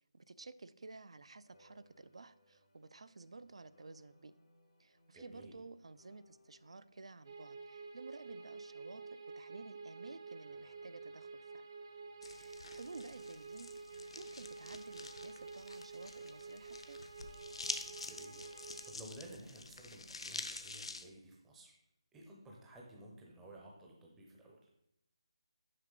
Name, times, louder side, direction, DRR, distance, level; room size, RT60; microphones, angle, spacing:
voice 1, 0.1-4.3 4.8-9.0 9.4-11.7 12.2-13.8 14.2-17.0, right 3 dB, 75° right, 15 dB, 0.4 m, -53 dB
sound 1, 1.4-15.9 16.1-20.6, left 1 dB, 90° left, 1.8 m, -69 dB
voice 2, 5.1-5.5 18.0-18.3 18.6-21.7 22.1-24.7, right 1 dB, 5° right, -2 dB, 0.5 m, -54 dB
sound 2, 7.2-18.9, right 4 dB, 45° right, 0.7 m, -50 dB
sound 3, 12.2-21.0, left 3 dB, 70° left, 0.6 m, -47 dB
6.4 x 4.7 x 3.8 m, 0.81 s
figure-of-eight pair, 175°, 3 cm